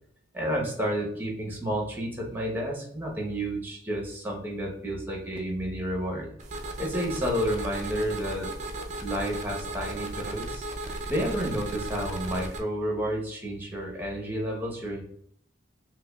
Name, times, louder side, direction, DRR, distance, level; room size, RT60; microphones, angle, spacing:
voice 1, 0.3-6.3 6.8-8.5 9.0-10.7 11.1-15.0, equal, 10° right, -1 dB, 0.8 m, -30 dB
sound 1, 6.4-12.6, right 2 dB, 35° right, 0.4 m, -36 dB
5.1 x 2.2 x 2.2 m, 0.64 s
head